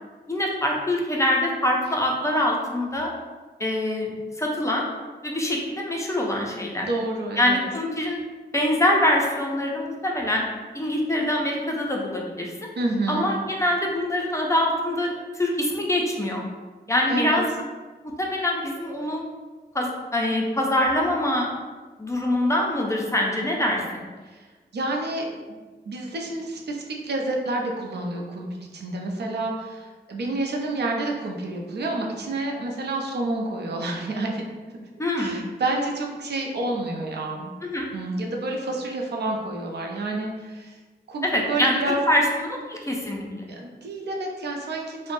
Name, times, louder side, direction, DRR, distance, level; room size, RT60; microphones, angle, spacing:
voice 1, 0.3-3.1 3.6-4.8 5.2-6.9 7.4-8.2 8.5-10.4 10.7-12.5 13.1-15.1 15.3-16.4 16.9-17.5 18.2-19.2 19.7-21.5 22.0-24.1 35.0-35.4 37.6-37.9 41.2-41.8 42.1-43.5, left 1 dB, 15° left, -1 dB, 0.4 m, -24 dB
voice 2, 6.8-7.6 12.8-13.3 17.1-17.4 24.2-24.5 24.7-25.6 25.9-34.5 34.8-34.9 35.2-37.5 37.9-40.8 41.1-42.0 43.5-45.1, right 2 dB, 70° right, 0 dB, 0.4 m, -29 dB
3.0 x 2.1 x 2.5 m, 1.3 s
wide cardioid pair, 100°, 18 cm